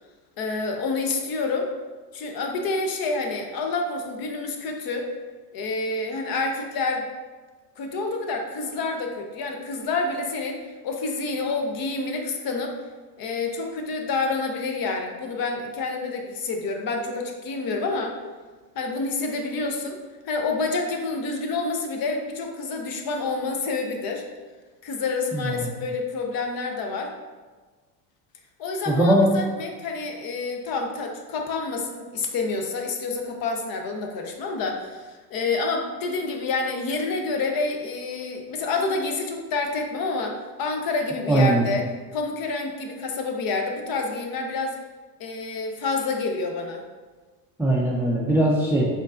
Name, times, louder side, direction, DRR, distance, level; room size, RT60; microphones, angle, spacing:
voice 1, 0.4-1.7 2.1-5.1 5.5-7.1 7.8-12.7 13.2-18.2 18.8-20.0 20.3-24.2 24.8-27.1 28.6-41.8 42.1-44.8 45.2-46.8, left 3 dB, 45° left, 3 dB, 0.8 m, -28 dB
voice 2, 25.3-25.7 28.9-29.3 41.3-41.7 47.6-48.9, right 1 dB, 5° right, -3 dB, 0.4 m, -20 dB
5.2 x 3.9 x 2.4 m, 1.4 s
supercardioid pair, 105°, 50 cm